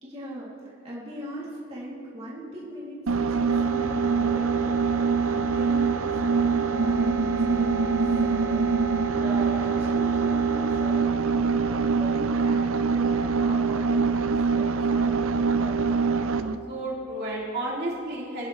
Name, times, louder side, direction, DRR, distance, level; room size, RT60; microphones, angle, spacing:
voice 1, 0.0-3.0 3.3-9.1 9.6-16.2, equal, 30° right, -7 dB, 2.6 m, -40 dB
sound 1, 3.1-16.6, right 5 dB, 75° right, 0.5 m, -24 dB
voice 2, 9.1-9.7 16.7-18.5, right 1 dB, 50° right, -5 dB, 2.6 m, -32 dB
22.0 x 10.0 x 3.2 m, 2.4 s
head